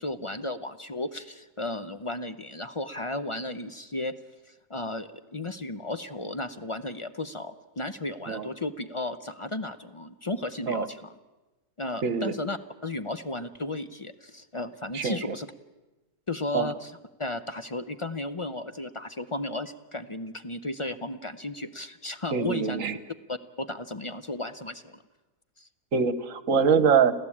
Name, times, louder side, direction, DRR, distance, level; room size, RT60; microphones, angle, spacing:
voice 1, 0.0-4.1 4.4-11.1 11.8-15.5 16.3-22.8 23.3-25.0 25.6-25.7, left 2 dB, 35° left, 11 dB, 0.5 m, -34 dB
voice 2, 12.0-12.3 14.9-15.2 16.5-16.7 22.3-23.0 25.9-27.1, right 6 dB, 65° right, 14 dB, 1.4 m, -24 dB
27.5 x 15.5 x 8.6 m, 1.1 s
omnidirectional pair, 1.6 m